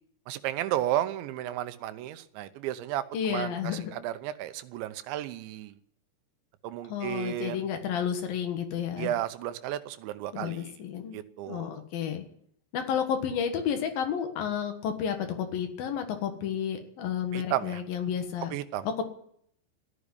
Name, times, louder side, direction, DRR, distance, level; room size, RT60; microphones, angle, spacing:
voice 1, 0.3-3.0 3.3-5.8 6.6-7.6 9.0-10.7 11.1-11.8 17.3-17.8 18.5-18.9, right 13 dB, 85° right, 12 dB, 3.2 m, -33 dB
voice 2, 3.1-3.9 6.9-9.1 10.3-11.2 11.5-12.2 12.7-18.5 18.8-19.0, left 8 dB, 60° left, 6 dB, 3.0 m, -31 dB
14.0 x 10.5 x 9.9 m, 0.68 s
omnidirectional pair, 5.1 m